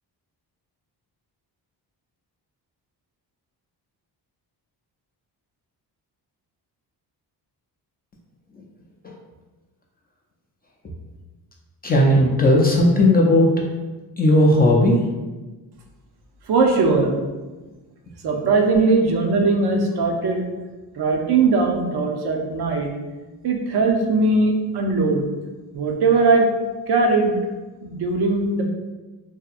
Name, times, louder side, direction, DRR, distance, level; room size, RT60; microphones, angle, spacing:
voice 1, 11.8-13.5 14.2-15.0, left 1 dB, 25° left, -2 dB, 0.3 m, -15 dB
voice 2, 16.5-17.1 18.2-20.5 21.0-22.9 23.4-25.2 25.7-26.5 26.9-27.4 27.8-28.6, right 3 dB, 65° right, 2 dB, 0.6 m, -19 dB
2.7 x 2.5 x 2.4 m, 1.2 s
cardioid pair, 95°, 42 cm